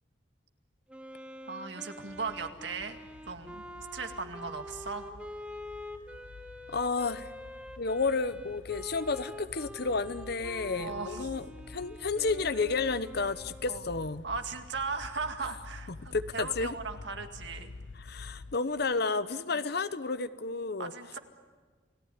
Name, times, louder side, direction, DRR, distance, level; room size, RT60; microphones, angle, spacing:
Wind instrument woodwind instrument, 0.9-14.3, left 1 dB, 5° right, 1.3 m, -46 dB
voice 1, 1.5-3.0 3.3-3.6 3.9-5.1 10.7-11.3 13.7-13.8 14.2-17.7 20.8-21.2, right 4 dB, 70° right, 6 dB, 2.1 m, -37 dB
sound 1, 2.1-18.6, left 3 dB, 85° left, 0.7 m, -49 dB
voice 2, 6.7-7.3 7.8-14.2 15.9-16.7 17.9-20.9, left 4 dB, 60° left, 14 dB, 1.0 m, -31 dB
30.0 x 18.0 x 9.7 m, 1.5 s
head